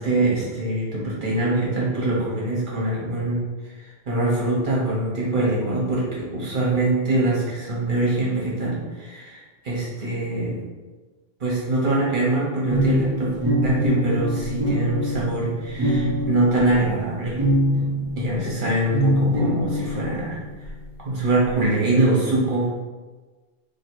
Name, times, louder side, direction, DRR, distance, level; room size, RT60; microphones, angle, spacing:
voice 1, 0.0-10.6 11.4-17.4 18.2-20.7 21.0-22.7, right 2 dB, 55° right, -5 dB, 1.2 m, -24 dB
sound 1, 12.7-18.5 18.9-20.8, equal, 30° right, 0.5 m, -24 dB
2.8 x 2.8 x 4.4 m, 1.3 s
omnidirectional pair, 1.1 m